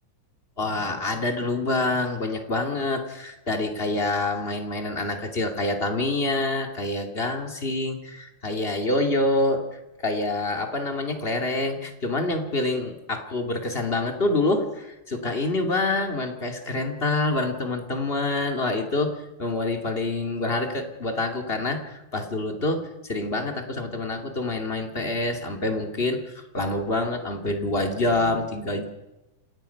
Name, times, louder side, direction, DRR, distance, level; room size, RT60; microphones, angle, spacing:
voice 1, 0.6-28.9, left 2 dB, 20° left, 4 dB, 2.4 m, -26 dB
28.5 x 17.5 x 5.8 m, 1.0 s
omnidirectional pair, 3.6 m